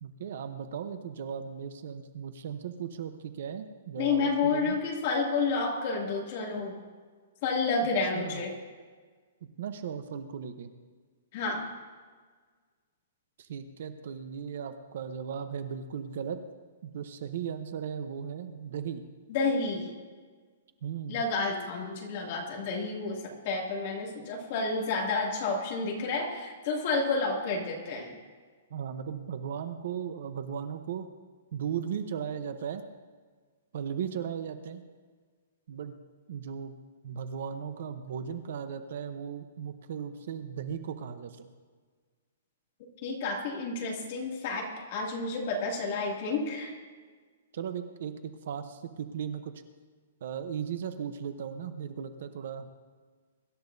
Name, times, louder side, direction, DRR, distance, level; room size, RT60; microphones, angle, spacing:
voice 1, 0.0-4.8 8.1-8.4 9.6-10.7 13.4-16.4 16.8-19.0 20.8-21.2 28.7-31.1 31.5-32.8 33.7-34.8 35.7-35.9 36.3-36.8 37.0-41.5 47.5-49.5 50.2-52.7, right 7 dB, 50° right, 9 dB, 0.8 m, -37 dB
voice 2, 4.0-6.8 7.4-8.5 11.3-11.6 19.3-19.9 21.1-28.1 43.0-46.7, left 4 dB, 30° left, -1 dB, 2.4 m, -30 dB
24.0 x 12.5 x 2.7 m, 1.5 s
hypercardioid pair, 180°, 0 cm